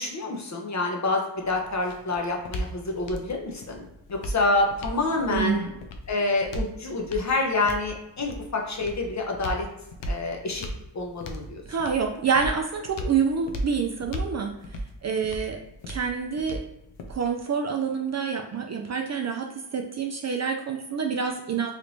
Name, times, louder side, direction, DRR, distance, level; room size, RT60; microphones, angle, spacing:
voice 1, 0.0-5.6 6.1-9.7 10.1-10.7 10.9-11.6, left 2 dB, 40° left, 1 dB, 0.8 m, -27 dB
sound 1, 1.4-17.4, equal, 75° left, 0.6 m, -37 dB
voice 2, 5.3-5.7 11.7-14.5 15.0-15.6 15.9-16.6 17.1-21.8, right 6 dB, 40° right, 3 dB, 0.4 m, -27 dB
3.2 x 2.6 x 3.0 m, 0.88 s
cardioid pair, 80°, 45 cm